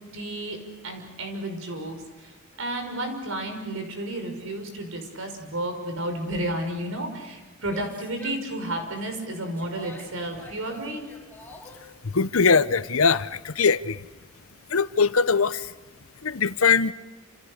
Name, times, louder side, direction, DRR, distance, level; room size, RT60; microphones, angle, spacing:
voice 1, 0.1-0.6 0.8-11.1, right 1 dB, 75° right, 5 dB, 5.9 m, -32 dB
Female speech woman speaking / Yell, 7.6-11.9, left 2 dB, 10° left, 3.4 m, -46 dB
voice 2, 12.0-14.1 14.7-15.7 16.2-16.9, left 5 dB, 80° left, 15 dB, 0.9 m, -21 dB
29.0 x 28.5 x 6.6 m, 1.2 s
head